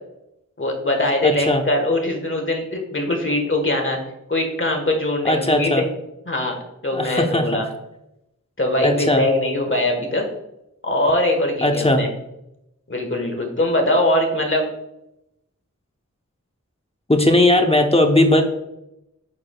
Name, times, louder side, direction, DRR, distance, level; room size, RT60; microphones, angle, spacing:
voice 1, 0.6-4.0 4.3-5.8 6.3-7.6 8.6-10.2 10.8-12.1 12.9-14.7, left 1 dB, 40° left, 2 dB, 1.4 m, -22 dB
voice 2, 1.2-1.6 5.2-5.9 6.9-7.6 8.8-9.3 11.6-12.1 17.1-18.4, left 1 dB, 20° left, 4 dB, 0.9 m, -18 dB
8.6 x 4.8 x 2.3 m, 0.85 s
wide cardioid pair, 55°, 30 cm